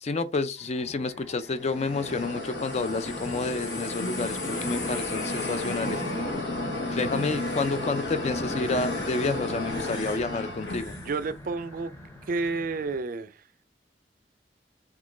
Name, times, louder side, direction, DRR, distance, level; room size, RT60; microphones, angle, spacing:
voice 1, 0.0-6.3 6.7-10.9, left 3 dB, 40° left, 0.4 m, -30 dB
sound 1, 0.6-13.0, equal, 15° left, 0.8 m, -42 dB
sound 2, 1.5-11.2, left 2 dB, 80° left, 1.0 m, -32 dB
voice 2, 10.9-11.9 12.3-13.3, right 3 dB, 50° right, 0.4 m, -30 dB
3.6 x 3.0 x 3.8 m
head